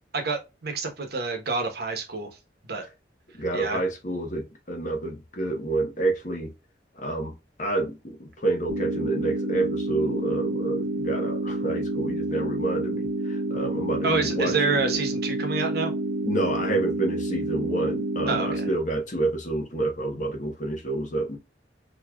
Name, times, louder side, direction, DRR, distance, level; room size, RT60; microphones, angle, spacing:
voice 1, 0.1-2.3 2.6-2.9 3.5-3.8 14.0-15.9 18.3-18.7, right 4 dB, 55° right, 1.1 m, -28 dB
voice 2, 3.3-6.5 7.0-7.3 7.6-15.0 16.2-21.4, right 2 dB, 45° left, 1.1 m, -28 dB
sound 1, 8.7-18.7, right 1 dB, 15° left, 2.2 m, -29 dB
4.5 x 3.0 x 2.3 m
head